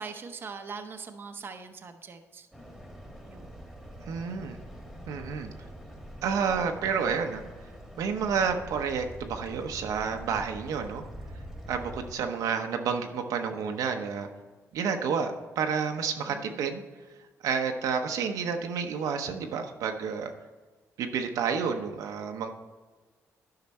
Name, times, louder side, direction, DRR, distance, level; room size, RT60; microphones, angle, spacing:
voice 1, 0.0-2.5 3.3-3.6 16.3-16.6, right 5 dB, 40° right, 5 dB, 0.8 m, -42 dB
sound 1, 2.5-12.1, equal, ahead, 1.7 m, -44 dB
voice 2, 4.1-4.6 5.1-5.5 6.2-7.4 8.0-11.0 11.7-14.3 14.7-16.8 17.4-20.3 21.0-22.5, right 6 dB, 80° right, 4 dB, 0.9 m, -30 dB
10.5 x 5.8 x 4.3 m, 1.4 s
cardioid pair, 105°, 6 cm